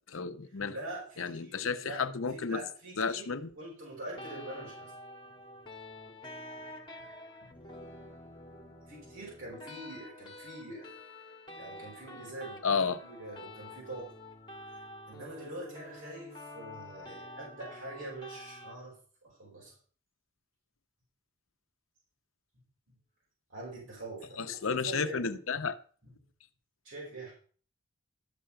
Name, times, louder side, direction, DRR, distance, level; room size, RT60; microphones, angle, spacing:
voice 1, 0.1-0.7 1.2-2.6 3.0-3.5 12.6-13.0 24.4-25.7, left 5 dB, 65° left, 10 dB, 0.7 m, -32 dB
voice 2, 0.7-2.0 2.3-4.9 7.4-7.5 8.9-10.9 11.2-14.1 15.1-19.7 23.5-25.4 26.8-27.3, right 2 dB, 65° right, -4 dB, 5.0 m, -44 dB
sound 1, 4.1-18.7, left 1 dB, 20° left, 1.6 m, -48 dB
12.5 x 6.4 x 5.8 m, 0.43 s
head